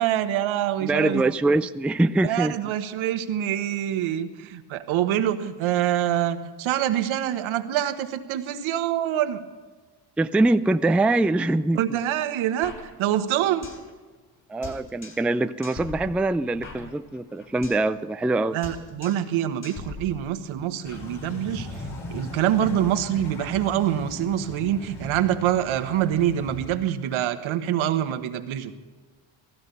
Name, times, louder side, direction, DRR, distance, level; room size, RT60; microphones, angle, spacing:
voice 1, 0.0-1.2 2.2-9.4 11.7-13.7 18.5-21.7 22.1-28.7, right 11 dB, 75° right, 8 dB, 1.4 m, -25 dB
voice 2, 0.8-2.6 10.2-12.0 14.5-18.6, right 2 dB, 5° right, 11 dB, 0.4 m, -23 dB
sound 1, 12.6-13.9 14.2-14.3 14.6-15.3 15.6-17.9 18.2-18.4 18.6-19.3 19.6-20.6, left 3 dB, 40° left, 5.7 m, -41 dB
sound 2, 20.8-26.7, left 2 dB, 70° left, 5.3 m, -38 dB
17.0 x 15.0 x 5.5 m, 1.3 s
supercardioid pair, 75°, 48 cm